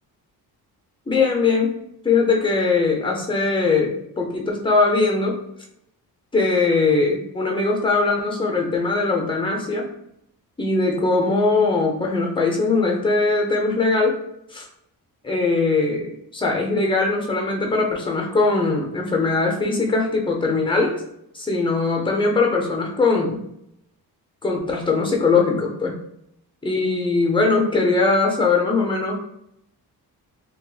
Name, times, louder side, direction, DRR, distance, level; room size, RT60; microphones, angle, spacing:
voice 1, 1.1-5.4 6.3-9.9 10.6-14.2 14.5-14.7 15.2-21.0 21.3-23.4 24.4-26.0 26.6-29.2, left 3 dB, 15° left, 1 dB, 0.6 m, -21 dB
2.9 x 2.9 x 2.2 m, 0.76 s
cardioid pair, 120°, 38 cm